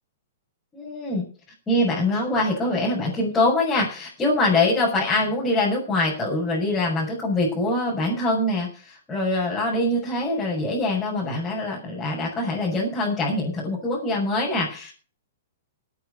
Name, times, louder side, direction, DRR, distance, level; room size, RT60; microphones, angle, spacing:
voice 1, 0.7-1.3 1.7-14.9, left 2 dB, 10° left, -6 dB, 6.7 m, -24 dB
14.0 x 9.0 x 6.6 m, 0.38 s
hypercardioid pair, 145°, 0 cm